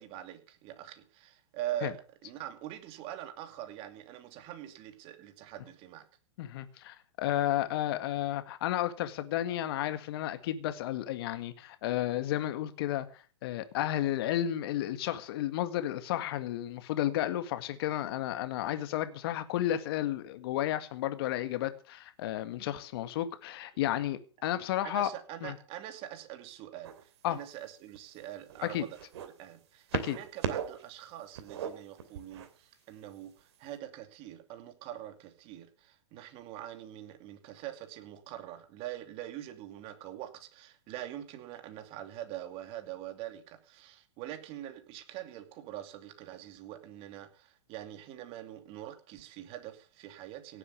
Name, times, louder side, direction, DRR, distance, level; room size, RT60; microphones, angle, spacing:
voice 1, 0.0-6.1 24.8-29.0 29.3-50.6, right 12 dB, 35° right, 2.6 m, -44 dB
voice 2, 6.4-25.1 25.4-25.5 27.2-27.4 28.6-28.8 29.9-30.2, left 13 dB, 55° left, 1.9 m, -32 dB
sound 1, 26.8-27.2 27.9-29.3 29.9-30.8 31.1-32.5 33.4-33.5, right 8 dB, 60° right, 2.8 m, -37 dB
17.5 x 8.3 x 6.5 m
hypercardioid pair, 130°, 15 cm